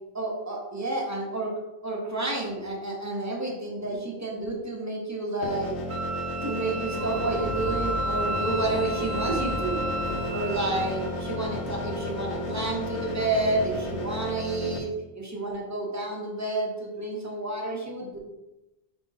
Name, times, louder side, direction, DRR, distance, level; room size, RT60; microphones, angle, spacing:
voice 1, 0.1-1.5 1.8-5.8 6.4-9.8 10.3-14.9 15.1-18.2, right 2 dB, 20° right, -1 dB, 0.6 m, -30 dB
sound 1, 5.4-14.8, left 1 dB, 85° left, 0.9 m, -34 dB
Wind instrument woodwind instrument, 5.9-11.0, right 1 dB, 75° right, 0.9 m, -33 dB
sound 2, 6.9-14.1, left 1 dB, 50° left, 0.4 m, -37 dB
5.1 x 3.4 x 2.7 m, 0.97 s
omnidirectional pair, 1.1 m